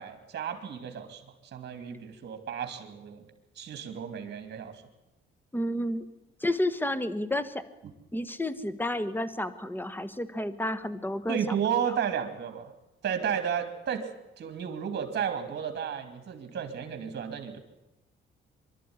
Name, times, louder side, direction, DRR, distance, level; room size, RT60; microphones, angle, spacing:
voice 1, 0.0-3.2 3.6-4.8 7.8-7.9 11.3-12.7 13.0-14.1 14.4-17.6, right 8 dB, 55° right, 7 dB, 2.9 m, -33 dB
voice 2, 5.5-6.0 6.4-7.6 8.1-11.4, left 1 dB, 10° left, 13 dB, 1.4 m, -30 dB
23.5 x 12.0 x 9.7 m, 0.99 s
cardioid pair, 90°, 20 cm